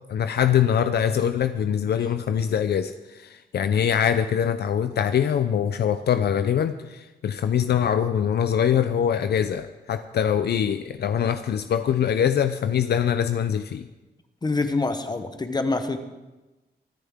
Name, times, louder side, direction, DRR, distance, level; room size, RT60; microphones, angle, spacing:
voice 1, 0.1-13.9, left 8 dB, 75° left, 10 dB, 0.5 m, -23 dB
voice 2, 14.4-16.0, left 3 dB, 25° left, 8 dB, 0.9 m, -25 dB
23.5 x 10.0 x 3.6 m, 1.1 s
wide cardioid pair, 150°, 17 cm